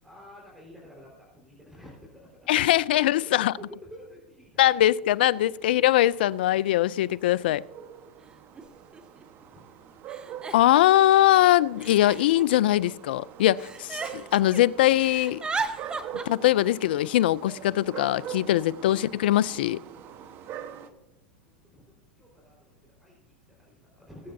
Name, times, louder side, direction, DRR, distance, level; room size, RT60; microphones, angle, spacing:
voice 1, 0.0-2.7 3.0-4.8 9.2-9.6 20.0-20.3 21.4-21.8 22.1-24.3, equal, ahead, 4.5 m, -50 dB
voice 2, 2.5-3.5 4.6-7.7 10.5-15.4 16.3-19.8, left 14 dB, 75° left, 0.4 m, -22 dB
sound 1, 5.8-20.9, right 9 dB, 45° right, 1.2 m, -44 dB
Giggle, 7.5-7.6 8.6-8.7 8.9-9.4 10.1-11.2 11.8-13.1 13.6-14.6 14.9-16.2, right 4 dB, 15° right, 1.1 m, -35 dB
21.5 x 8.6 x 2.7 m
hypercardioid pair, 110°, 5 cm